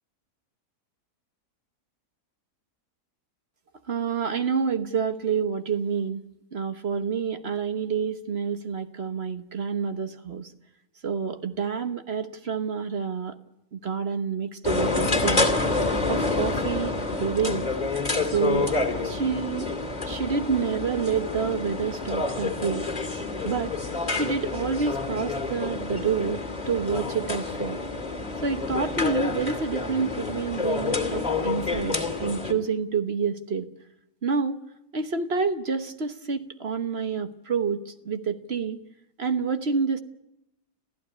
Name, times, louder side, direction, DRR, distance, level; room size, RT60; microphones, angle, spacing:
voice 1, 3.9-6.2 6.5-10.5 11.0-13.3 13.7-15.5 16.1-17.7 18.3-19.7 20.0-22.8 23.4-23.7 24.1-27.8 28.4-33.7 34.2-34.6 34.9-38.8 39.2-40.0, right 5 dB, 45° right, 8 dB, 1.3 m, -28 dB
sound 1, 14.6-32.5, left 3 dB, 25° left, 2.7 m, -28 dB
26.5 x 15.5 x 9.9 m, 0.87 s
omnidirectional pair, 1.6 m